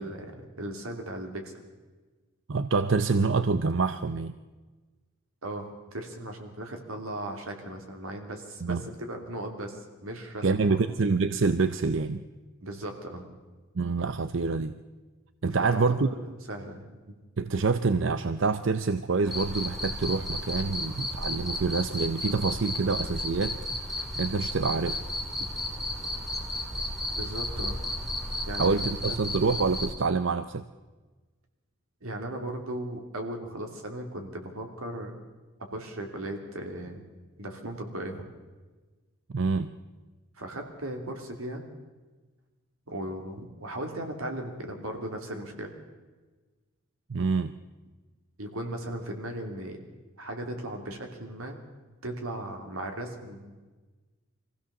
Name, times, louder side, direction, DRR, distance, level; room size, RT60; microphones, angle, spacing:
voice 1, 0.0-1.5 5.4-10.8 12.6-13.3 15.4-17.0 20.7-20.8 27.1-27.8 28.5-28.8 29.1-29.3 32.0-35.2 35.7-37.0 37.4-38.3 40.3-41.6 42.9-45.7 48.4-49.8 50.2-51.6 52.0-53.6, right 1 dB, 85° right, 4 dB, 3.0 m, -37 dB
voice 2, 2.5-4.3 8.6-8.8 10.4-12.2 13.7-14.7 15.4-16.1 17.4-25.0 28.5-30.6 39.3-39.7 47.1-47.5, right 4 dB, 60° right, 12 dB, 0.6 m, -26 dB
Cricket, 19.3-29.9, left 1 dB, ahead, 2.2 m, -33 dB
23.0 x 16.0 x 7.0 m, 1.3 s
head